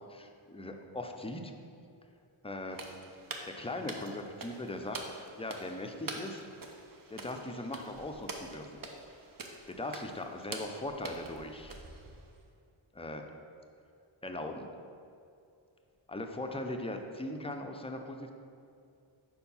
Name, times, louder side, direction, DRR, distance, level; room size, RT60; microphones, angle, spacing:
voice 1, 0.0-1.5 2.4-2.8 3.5-5.0 5.4-6.5 7.1-8.8 9.7-11.8 12.9-13.3 14.2-14.7 16.1-18.3, left 1 dB, 10° left, 4 dB, 0.5 m, -39 dB
sound 1, 2.7-12.4, right 3 dB, 45° right, 0.8 m, -46 dB
4.5 x 4.5 x 5.5 m, 2.5 s
cardioid pair, 55°, 49 cm